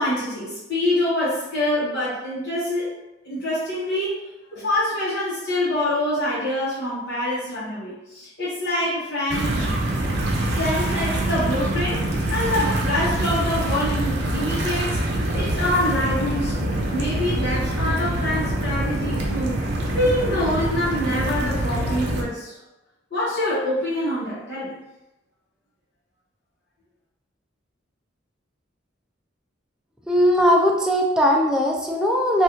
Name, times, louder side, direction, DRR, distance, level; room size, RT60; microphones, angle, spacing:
voice 1, 0.0-2.9 3.2-4.1 4.5-9.7 10.5-12.0 12.3-15.0 15.3-22.6 23.1-24.7, left 1 dB, 60° left, -10 dB, 1.0 m, -25 dB
sound 1, 9.3-22.2, right 1 dB, 60° right, 0.6 m, -25 dB
voice 2, 30.1-32.4, equal, 5° right, -1 dB, 0.4 m, -19 dB
2.9 x 2.4 x 3.6 m, 0.95 s
head